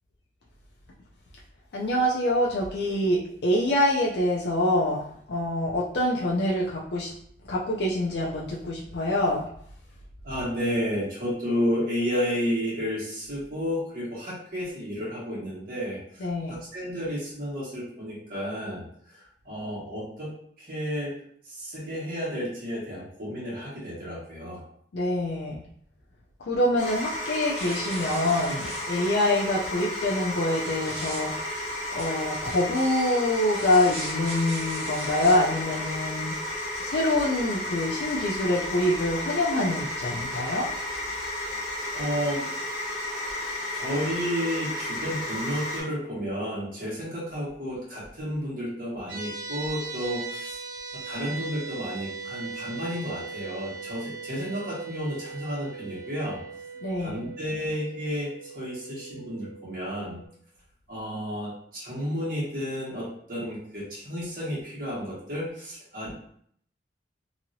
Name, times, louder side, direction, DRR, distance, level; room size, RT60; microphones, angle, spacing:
voice 1, 1.7-7.1 7.4-9.5 16.2-16.6 24.9-25.6 26.4-31.5 31.9-36.4 36.8-40.7 56.8-57.3, left 1 dB, 70° left, -4 dB, 0.5 m, -25 dB
voice 2, 10.2-18.8 19.4-20.3 20.6-21.1 21.5-24.6 41.9-42.5 43.7-50.6 50.9-56.4 57.0-60.2 60.9-66.2, equal, 55° right, -7 dB, 1.4 m, -32 dB
sound 1, 26.8-45.8, left 1 dB, 45° left, 0.9 m, -33 dB
sound 2, 27.4-29.3 30.1-31.2 32.0-35.4, right 1 dB, 35° right, 0.9 m, -41 dB
sound 3, 49.1-60.3, right 4 dB, 85° right, 0.8 m, -39 dB
3.0 x 2.8 x 2.6 m, 0.65 s
head